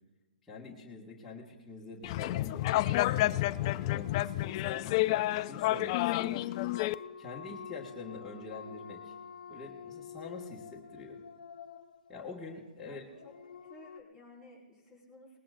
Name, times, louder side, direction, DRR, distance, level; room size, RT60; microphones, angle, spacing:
voice 1, 0.5-5.0 5.3-6.4 7.2-9.1 9.5-11.2 12.1-13.0, left 3 dB, 5° left, -7 dB, 1.8 m, -46 dB
sound 1, 2.0-6.9, left 16 dB, 40° left, 0.3 m, -30 dB
sound 2, 3.5-14.0, left 7 dB, 70° left, 0.9 m, -48 dB
voice 2, 12.8-15.4, left 1 dB, 10° right, -5 dB, 5.6 m, -55 dB
20.0 x 19.0 x 2.6 m, 1.2 s
hypercardioid pair, 135°, 5 cm